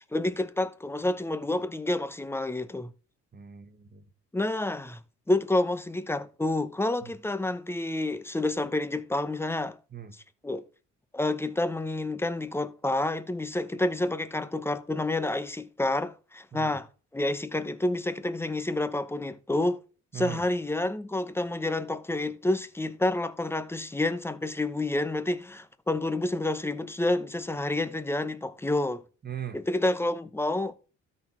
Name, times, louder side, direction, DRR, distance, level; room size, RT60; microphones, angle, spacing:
voice 1, 0.1-2.9 4.3-5.0 5.3-9.8 10.1-10.6 11.1-16.9 17.1-19.8 20.1-29.0 29.5-30.7, left 2 dB, 10° left, 0.8 m, -29 dB
voice 2, 3.3-4.0 7.0-7.1 9.9-10.1 16.5-16.8 20.1-20.4 29.2-29.6, right 9 dB, 35° right, 1.4 m, -39 dB
13.0 x 4.3 x 4.4 m
cardioid pair, 90°, 30 cm